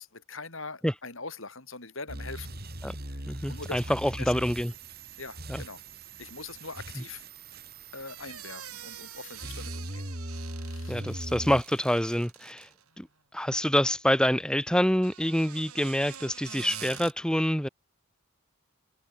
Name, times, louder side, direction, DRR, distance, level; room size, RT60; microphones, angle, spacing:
voice 1, 0.0-2.5 3.1-3.2 3.5-3.8 4.2-4.3 5.2-5.8 6.2-7.2 7.9-11.2, left 4 dB, 65° left, 5.4 m, -42 dB
sound 1, 2.1-11.6, right 1 dB, 45° right, 5.4 m, -40 dB
voice 2, 3.3-4.7 5.5-5.6 10.9-12.7 13.0-13.1 13.3-17.7, equal, 5° left, 1.7 m, -26 dB
sound 2, 8.1-12.9 14.9-17.1, right 10 dB, 90° right, 5.1 m, -46 dB
head